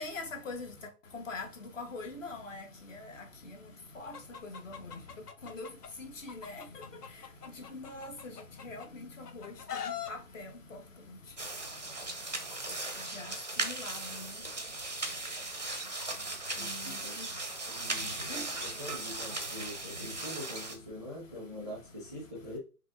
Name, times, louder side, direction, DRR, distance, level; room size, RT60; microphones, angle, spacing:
voice 1, 0.0-20.4 20.9-21.7, left 3 dB, 55° left, 1.3 m, -46 dB
Chicken rooster, 4.1-5.9 6.3-8.9 9.2-10.1, left 8 dB, 75° left, 0.8 m, -41 dB
sound 1, 11.4-20.8, right 2 dB, 30° right, 0.4 m, -38 dB
voice 2, 16.5-17.2 17.7-22.6, left 1 dB, 10° left, 0.7 m, -44 dB
4.9 x 3.1 x 2.5 m
hypercardioid pair, 155°, 47 cm